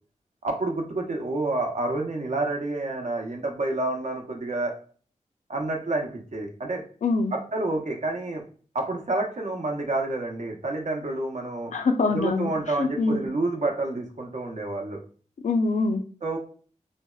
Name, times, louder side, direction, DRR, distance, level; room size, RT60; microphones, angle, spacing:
voice 1, 0.4-4.7 5.5-6.8 7.3-8.4 8.7-11.7 12.1-15.0 16.2-16.4, right 2 dB, 65° right, 1 dB, 0.7 m, -29 dB
voice 2, 7.0-7.3 11.7-12.5 12.8-13.2 15.4-16.0, left 3 dB, 65° left, 7 dB, 0.4 m, -24 dB
3.4 x 2.0 x 2.3 m, 0.42 s
cardioid pair, 50°, 13 cm